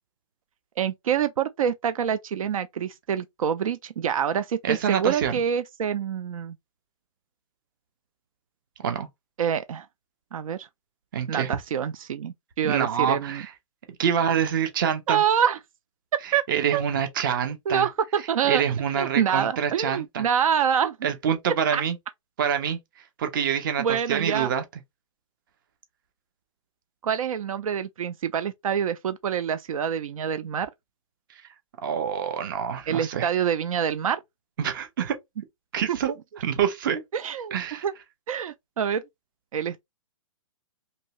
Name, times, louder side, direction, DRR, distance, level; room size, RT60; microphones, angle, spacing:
voice 1, 0.8-6.6 9.4-9.9 10.3-10.7 11.3-13.4 15.1-15.6 16.1-16.5 16.7-16.9 17.7-18.6 18.9-21.0 21.7-21.8 23.8-24.5 27.0-30.7 32.9-34.2 35.9-36.0 37.1-37.9 38.3-39.0 39.5-39.8, right 8 dB, 85° right, 0.4 m, -26 dB
voice 2, 4.6-5.4 8.8-9.1 11.1-11.5 12.6-13.5 14.0-15.2 16.5-17.9 18.5-20.2 21.0-22.0 22.4-22.8 23.2-24.6 31.8-33.3 34.6-35.2 35.7-37.0 37.5-37.8, right 8 dB, 40° right, 0.7 m, -26 dB
2.8 x 2.7 x 2.9 m
hypercardioid pair, 165°, 17 cm